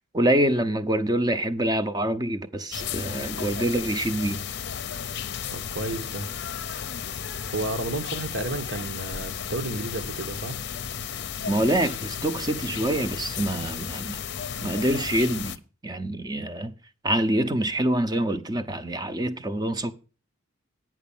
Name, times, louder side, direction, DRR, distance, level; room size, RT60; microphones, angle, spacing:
voice 1, 0.0-4.4 11.4-14.2 14.6-16.7 17.0-19.9, right 1 dB, 20° right, 0.7 m, -26 dB
sound 1, 2.7-15.6, left 8 dB, 50° left, 0.6 m, -34 dB
voice 2, 5.5-6.3 7.5-10.6, right 2 dB, 65° right, 1.3 m, -32 dB
9.4 x 6.0 x 7.1 m
head